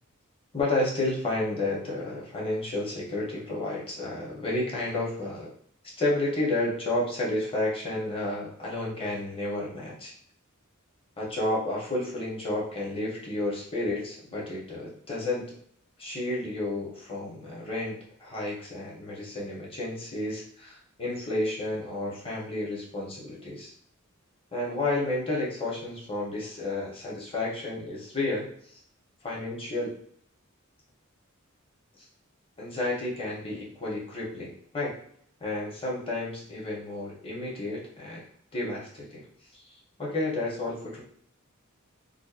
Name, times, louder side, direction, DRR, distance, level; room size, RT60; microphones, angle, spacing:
voice 1, 0.5-5.5 6.0-10.1 11.2-15.5 16.0-23.7 24.5-28.5 29.2-29.9 32.6-34.9 35.4-38.3 38.5-39.2 39.5-39.6 40.0-41.0, left 2 dB, 25° left, -4 dB, 0.7 m, -31 dB
2.5 x 2.1 x 2.3 m, 0.63 s
head